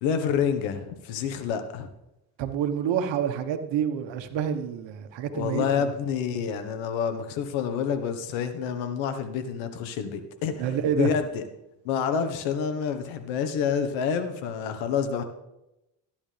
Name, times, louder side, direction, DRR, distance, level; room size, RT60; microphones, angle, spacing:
voice 1, 0.0-1.9 5.3-11.4 11.8-15.2, left 7 dB, 90° left, 9 dB, 1.5 m, -28 dB
voice 2, 2.4-5.9 10.6-11.1, right 8 dB, 75° right, 8 dB, 1.5 m, -28 dB
14.5 x 10.5 x 3.4 m, 0.91 s
cardioid pair, 90°, 45 cm